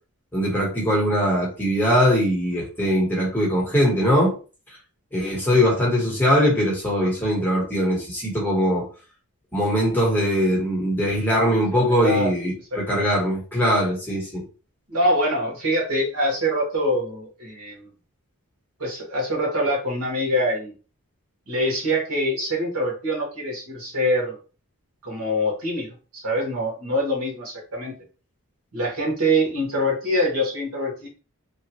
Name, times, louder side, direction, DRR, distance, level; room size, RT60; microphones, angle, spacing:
voice 1, 0.3-4.3 5.1-8.9 9.5-14.4, equal, 10° left, 1.0 m, -21 dB
voice 2, 11.7-12.3 12.7-13.0 14.9-17.9 18.8-20.7 21.5-24.4 25.0-27.9 28.7-31.1, equal, 85° right, 1.4 m, -24 dB
3.0 x 2.3 x 2.9 m
head